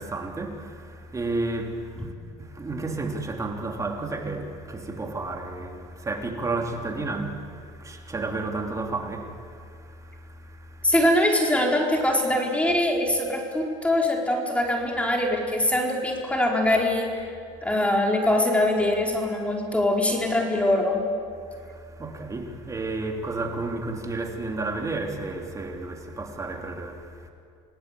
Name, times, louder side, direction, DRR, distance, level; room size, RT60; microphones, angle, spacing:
voice 1, 0.0-2.1 2.4-10.9 21.5-27.3, right 3 dB, 20° right, 3.3 m, -32 dB
voice 2, 10.8-17.2 17.6-21.0, left 1 dB, 10° left, 4.5 m, -23 dB
28.0 x 18.0 x 8.4 m
supercardioid pair, 100°, 15 cm